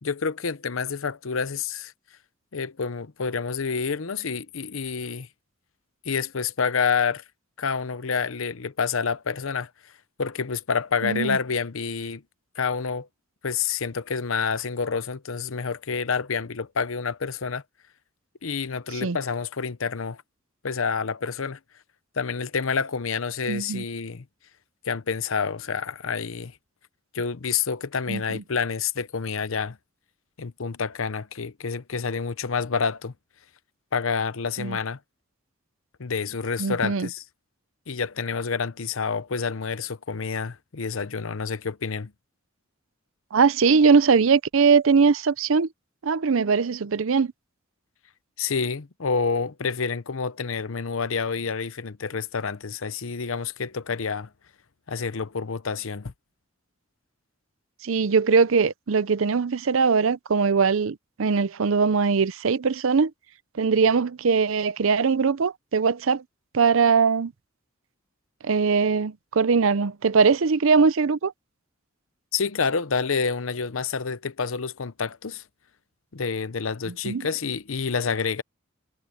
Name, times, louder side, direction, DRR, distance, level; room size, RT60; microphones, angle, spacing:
voice 1, 0.0-1.9 2.5-5.3 6.0-7.2 7.6-9.7 10.2-12.2 12.6-13.1 13.4-17.6 18.4-20.2 20.6-21.6 22.2-24.2 24.8-26.5 27.1-29.8 30.4-33.1 33.9-35.0 36.0-37.2 37.9-42.1 48.4-54.3 54.9-56.1 72.3-75.4 76.1-78.4, left 5 dB, 65° left, 0.8 m, -28 dB
voice 2, 11.0-11.4 19.0-19.2 23.5-23.8 28.1-28.4 34.6-34.8 36.6-37.1 43.3-45.7 46.0-47.3 57.8-63.1 63.5-66.2 66.5-67.3 68.4-71.3 77.1-77.3, right 5 dB, 65° right, 0.6 m, -21 dB
head